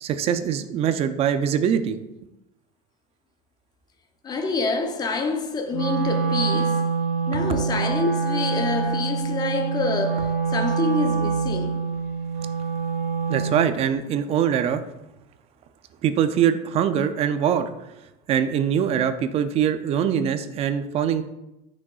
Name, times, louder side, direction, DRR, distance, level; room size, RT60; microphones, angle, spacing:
voice 1, 0.0-2.0 13.3-14.8 16.0-17.7 18.3-21.2, right 8 dB, 30° right, 0.4 m, -23 dB
voice 2, 4.2-6.9 7.3-11.9, left 3 dB, 20° left, 0.6 m, -27 dB
Wind instrument woodwind instrument, 5.7-13.7, right 5 dB, 75° right, 1.3 m, -25 dB
8.7 x 6.2 x 2.4 m
cardioid pair, 160°, 19 cm